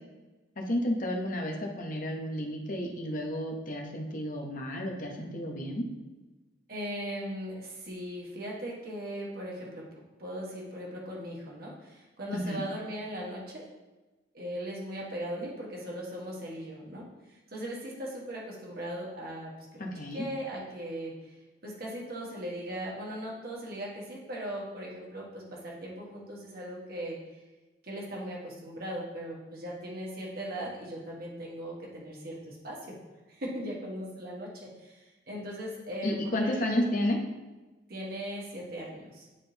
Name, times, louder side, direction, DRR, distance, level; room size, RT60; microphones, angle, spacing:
voice 1, 0.6-5.9 12.3-12.6 19.8-20.2 36.0-37.2, left 1 dB, 45° left, 1 dB, 0.9 m, -31 dB
voice 2, 6.7-9.8 10.2-13.6 14.3-17.1 17.5-19.9 20.1-21.1 21.6-27.2 27.8-32.9 33.3-34.5 34.8-36.9 37.9-39.3, equal, 55° right, -3 dB, 1.5 m, -38 dB
9.8 x 3.7 x 2.9 m, 1.2 s
head